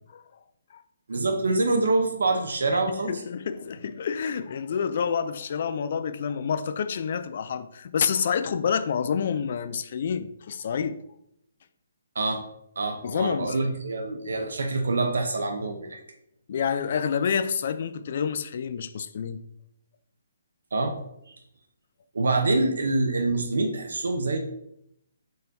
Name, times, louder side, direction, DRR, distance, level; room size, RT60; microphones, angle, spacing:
voice 1, 1.1-3.1 12.1-12.4 12.8-16.0 20.7-20.9 21.3-21.4 22.1-24.4, right 2 dB, 80° right, 0.6 m, -25 dB
voice 2, 3.1-11.0 13.0-13.8 16.5-19.4, left 7 dB, 55° left, 0.3 m, -28 dB
4.0 x 3.8 x 2.6 m
hypercardioid pair, 155°, 0 cm